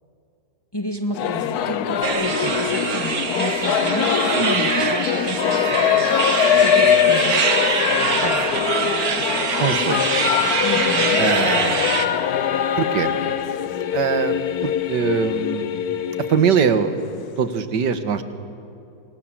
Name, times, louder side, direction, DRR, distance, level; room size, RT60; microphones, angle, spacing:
voice 1, 0.7-5.7 6.6-7.4 10.6-11.2, left 1 dB, 15° left, 4 dB, 1.8 m, -30 dB
Singing / Musical instrument, 1.1-17.5, left 9 dB, 65° left, 1.3 m, -22 dB
sound 1, 2.0-12.1, right 5 dB, 55° right, 1.9 m, -24 dB
voice 2, 9.6-10.2 11.2-11.9 12.8-13.1 13.9-14.4 14.6-15.7 16.3-16.9 17.4-18.2, right 7 dB, 75° right, 10 dB, 2.0 m, -22 dB
29.0 x 25.0 x 7.6 m, 2.7 s
omnidirectional pair, 1.9 m